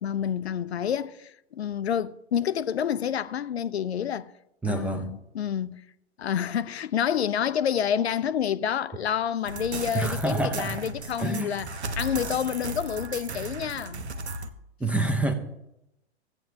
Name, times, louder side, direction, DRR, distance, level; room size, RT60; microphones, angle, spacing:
voice 1, 0.0-4.3 4.7-5.8 6.2-11.7 12.0-14.1, left 9 dB, 70° left, 0.5 m, -28 dB
voice 2, 4.6-5.1 9.9-10.9 11.2-11.8 14.8-15.3, right 2 dB, 5° right, 0.6 m, -27 dB
sound 1, 9.4-14.5, right 3 dB, 70° right, 0.9 m, -36 dB
16.5 x 8.1 x 2.7 m
figure-of-eight pair, 105°, 34 cm